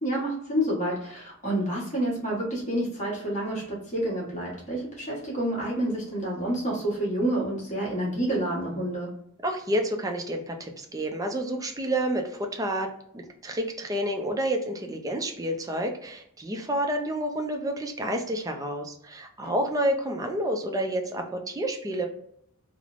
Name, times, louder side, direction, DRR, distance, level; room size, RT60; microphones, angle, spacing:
voice 1, 0.0-9.2 19.4-19.5, right 1 dB, 35° left, -4 dB, 1.2 m, -29 dB
voice 2, 9.4-22.1, right 1 dB, 15° right, 4 dB, 0.4 m, -29 dB
3.1 x 2.0 x 2.4 m, 0.70 s
head